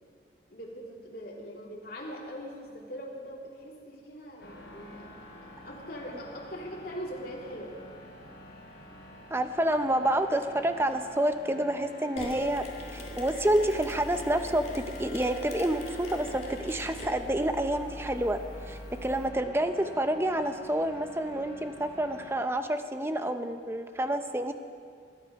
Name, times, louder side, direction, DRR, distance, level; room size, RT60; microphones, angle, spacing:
voice 1, 0.5-7.8, equal, 55° left, -3 dB, 3.1 m, -42 dB
sound 1, 4.4-22.4, left 1 dB, 75° left, 3.1 m, -49 dB
voice 2, 9.3-12.7 12.9-18.4 18.7-24.5, right 1 dB, 15° right, 8 dB, 0.7 m, -28 dB
Mechanisms, 12.2-19.3, left 1 dB, 40° left, 2.3 m, -41 dB
21.5 x 11.5 x 5.3 m, 2.2 s
head